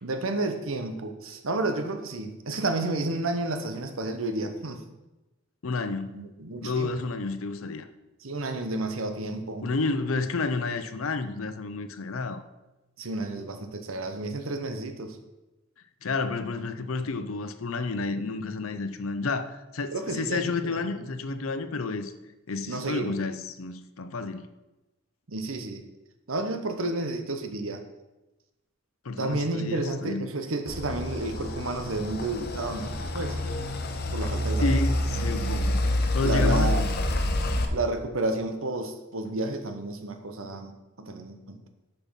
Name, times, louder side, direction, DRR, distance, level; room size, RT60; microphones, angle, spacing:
voice 1, 0.0-4.8 6.1-6.9 8.2-9.7 13.0-15.2 19.9-20.8 22.7-23.1 25.3-25.8 26.3-27.8 29.2-33.4 34.1-34.8 36.2-36.8 37.7-40.7 41.0-41.6, right 2 dB, 80° right, 8 dB, 1.0 m, -31 dB
voice 2, 5.6-6.3 6.6-7.9 9.6-12.4 16.0-22.1 22.5-24.4 29.0-30.3 34.6-35.9 36.1-36.9, left 3 dB, 90° left, 9 dB, 0.7 m, -30 dB
sound 1, 30.7-37.7, left 1 dB, 50° left, 0.9 m, -27 dB
7.1 x 5.7 x 5.7 m, 1.0 s
head